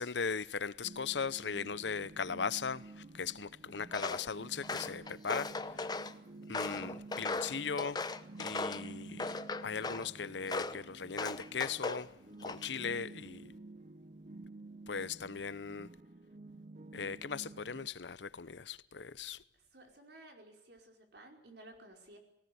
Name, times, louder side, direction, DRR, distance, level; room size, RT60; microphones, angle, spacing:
voice 1, 0.0-5.5 6.5-8.0 8.4-9.4 9.6-12.1 12.4-13.5 14.9-15.9 16.9-19.4, left 6 dB, 75° left, 0.8 m, -38 dB
sound 1, 0.8-17.9, right 2 dB, 45° right, 1.0 m, -51 dB
Walk footsteps, 3.9-4.3 4.6-6.1 6.5-8.9 9.2-10.1 10.5-10.8 11.2-12.0 12.4-12.8, left 3 dB, 25° left, 0.9 m, -38 dB
voice 2, 19.5-22.2, right 1 dB, 65° right, 5.0 m, -55 dB
19.0 x 18.5 x 9.5 m
head